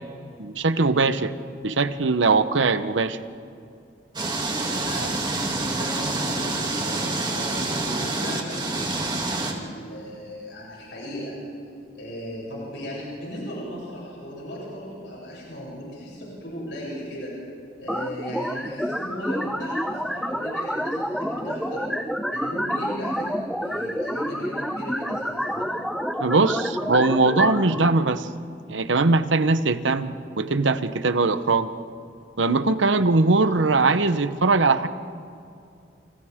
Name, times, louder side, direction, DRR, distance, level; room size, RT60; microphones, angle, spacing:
voice 1, 0.4-1.3 1.6-3.2 5.0-5.1 26.2-28.3 28.7-31.7 32.4-34.9, right 3 dB, 85° right, 11 dB, 1.0 m, -21 dB
sound 1, 4.1-9.5, right 2 dB, 25° right, 2.5 m, -27 dB
voice 2, 4.7-11.3 11.9-17.3 17.8-21.9 22.3-25.7, equal, 75° left, -6 dB, 7.9 m, -37 dB
sound 2, 17.9-27.9, equal, ahead, 0.8 m, -28 dB
29.0 x 28.0 x 3.7 m, 2.4 s
head